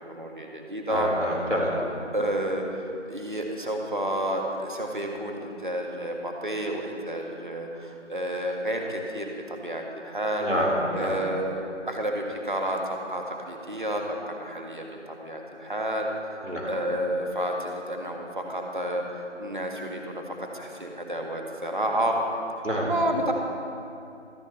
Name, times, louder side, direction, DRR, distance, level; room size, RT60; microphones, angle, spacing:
voice 1, 0.1-1.1 2.1-10.5 10.9-16.1 16.7-22.2 22.9-23.3, right 1 dB, 40° right, 1 dB, 1.7 m, -30 dB
voice 2, 0.9-1.8 10.4-11.2 16.4-16.7 22.6-22.9, equal, 80° right, -3 dB, 4.2 m, -27 dB
25.0 x 11.5 x 3.2 m, 2.6 s
figure-of-eight pair, 170°, 37 cm